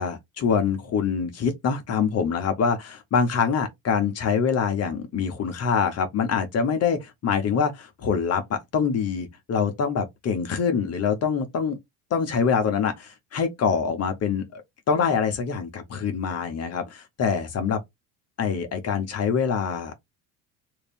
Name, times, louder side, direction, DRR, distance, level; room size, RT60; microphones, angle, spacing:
voice 1, 0.0-11.8 12.1-14.6 14.9-17.8 18.4-19.9, left 6 dB, 40° left, 0.9 m, -25 dB
3.2 x 2.5 x 3.5 m
supercardioid pair, 95°, 37 cm